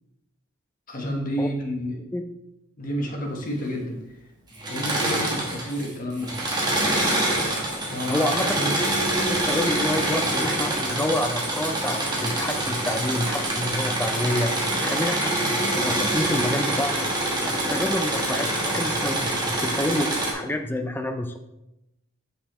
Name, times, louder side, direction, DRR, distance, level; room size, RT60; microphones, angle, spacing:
voice 1, 0.9-2.0 2.8-4.0 4.7-6.3 7.9-8.8, equal, 40° left, 1 dB, 1.1 m, -30 dB
Engine / Mechanisms, 4.5-5.9 6.2-20.3, right 1 dB, 20° right, 1.1 m, -25 dB
voice 2, 8.1-14.5 14.8-17.1 17.4-21.4, left 1 dB, 10° left, 6 dB, 0.4 m, -28 dB
6.5 x 5.3 x 3.0 m, 0.91 s
head